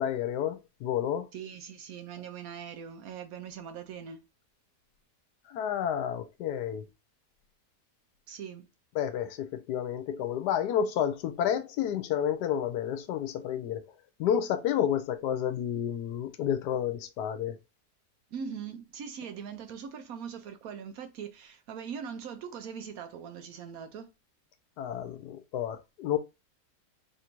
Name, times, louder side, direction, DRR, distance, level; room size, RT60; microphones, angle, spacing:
voice 1, 0.0-1.3 5.5-6.9 8.9-13.8 14.2-17.6 24.8-26.2, left 9 dB, 80° left, 1.2 m, -30 dB
voice 2, 1.3-4.2 8.3-8.7 18.3-24.1, right 7 dB, 70° right, 1.0 m, -41 dB
3.3 x 2.6 x 4.4 m
omnidirectional pair, 1.8 m